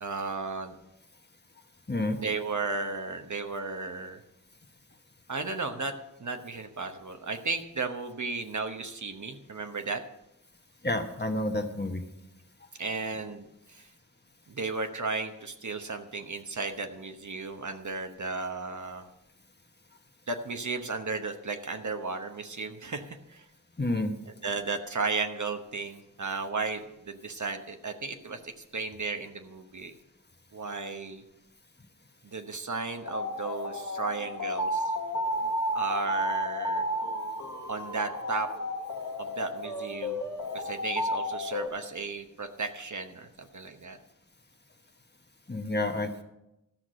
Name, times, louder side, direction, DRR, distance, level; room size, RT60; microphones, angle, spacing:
voice 1, 0.0-0.7 2.2-4.2 5.3-5.9 6.2-10.0 12.8-13.9 14.5-19.1 20.3-23.5 24.4-29.9 30.5-31.2 32.2-34.9 35.7-36.9 37.7-38.5 39.2-40.2 40.5-44.0, right 4 dB, 65° right, 6 dB, 1.0 m, -34 dB
voice 2, 1.9-2.2 10.8-12.0 23.8-24.1 45.5-46.2, left 1 dB, 30° left, 5 dB, 1.2 m, -29 dB
sound 1, 33.0-41.7, equal, 65° left, 1.4 m, -32 dB
13.5 x 6.0 x 6.4 m, 0.89 s
wide cardioid pair, 60°, 32 cm